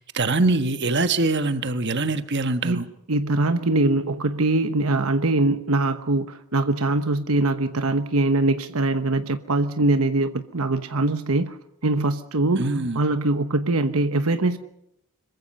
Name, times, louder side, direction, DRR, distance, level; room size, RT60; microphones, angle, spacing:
voice 1, 0.0-2.8 12.6-13.0, right 3 dB, 50° right, 1.4 m, -23 dB
voice 2, 3.1-11.6 11.8-12.7 12.9-14.6, right 2 dB, 75° right, 1.1 m, -22 dB
26.5 x 23.0 x 5.5 m
head